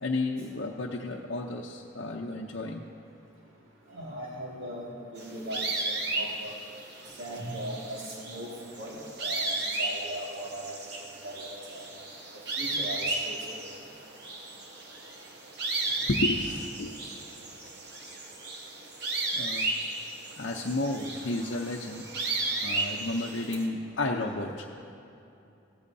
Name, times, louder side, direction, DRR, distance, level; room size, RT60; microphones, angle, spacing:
voice 1, 0.0-2.9 16.1-17.1 19.3-19.6 20.4-22.1 22.6-24.7, left 2 dB, 70° left, -2 dB, 0.7 m, -32 dB
voice 2, 3.9-4.8 5.1-6.5 7.2-8.5 8.8-9.0 9.2-9.5 9.8-10.6 11.0-11.4 11.7-11.8 12.6-13.4, right 1 dB, 85° right, -4 dB, 2.2 m, -38 dB
sound 1, 5.2-23.7, right 2 dB, 55° right, 1.2 m, -34 dB
16.5 x 14.0 x 2.7 m, 2.7 s
head